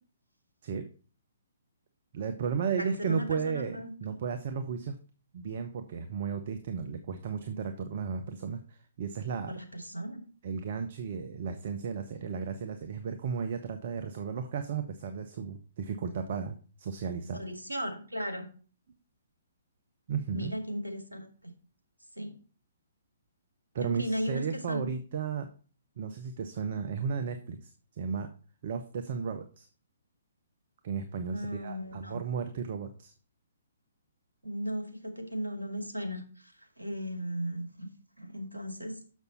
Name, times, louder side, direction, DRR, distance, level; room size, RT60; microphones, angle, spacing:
voice 1, 2.1-5.0 5.3-9.6 10.4-17.4 20.1-20.5 23.7-25.5 26.0-28.3 28.6-29.7 30.8-33.1, right 6 dB, 45° right, 8 dB, 0.7 m, -34 dB
voice 2, 2.8-4.2 9.5-10.2 17.3-18.5 20.3-21.3 22.2-22.3 23.8-24.9 31.3-32.2 34.4-37.9 38.2-38.9, equal, 85° right, 3 dB, 1.9 m, -36 dB
6.7 x 6.3 x 4.0 m, 0.39 s
figure-of-eight pair, 125°, 0 cm